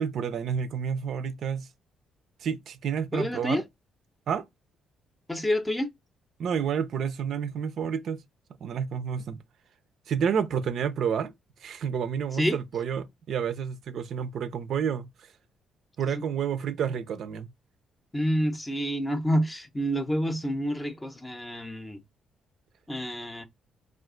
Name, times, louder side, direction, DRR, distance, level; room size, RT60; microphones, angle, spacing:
voice 1, 0.0-1.7 2.4-3.6 4.3-4.4 6.4-8.2 8.6-9.4 10.1-11.3 11.6-15.1 16.0-17.5, right 7 dB, 65° right, 0.4 m, -29 dB
voice 2, 3.1-3.6 5.3-5.9 12.3-12.6 16.1-16.2 18.1-22.0 22.9-23.5, equal, 15° left, 0.6 m, -28 dB
2.4 x 2.3 x 3.6 m
cardioid pair, 90°, 0 cm